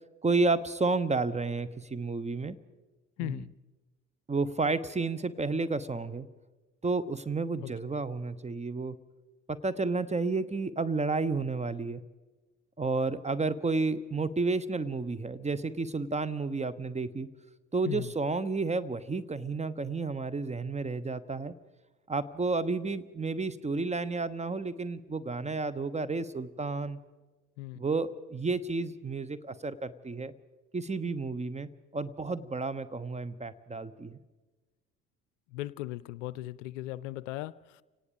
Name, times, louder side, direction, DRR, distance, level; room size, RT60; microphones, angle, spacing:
voice 1, 0.2-2.6 3.2-3.5 4.3-6.3 6.8-9.0 9.5-12.0 12.8-17.3 17.7-21.5 22.1-27.0 27.7-30.3 30.7-34.2, right 3 dB, 15° right, 15 dB, 1.1 m, -31 dB
voice 2, 3.2-3.5 7.6-7.7 17.9-18.1 27.6-27.8 35.5-37.8, left 16 dB, 70° left, 19 dB, 0.6 m, -37 dB
29.5 x 18.5 x 5.2 m, 1.2 s
figure-of-eight pair, 50°, 39 cm